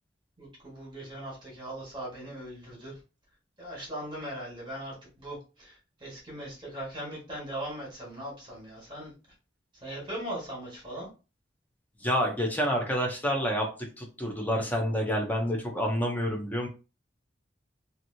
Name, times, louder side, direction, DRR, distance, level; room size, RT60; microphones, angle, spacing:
voice 1, 0.4-2.9 3.6-5.7 6.0-9.1 9.8-11.1, right 1 dB, 25° right, -4 dB, 1.4 m, -39 dB
voice 2, 12.0-13.7 14.0-16.7, equal, 10° left, 0 dB, 0.6 m, -28 dB
2.9 x 2.6 x 2.7 m, 0.32 s
head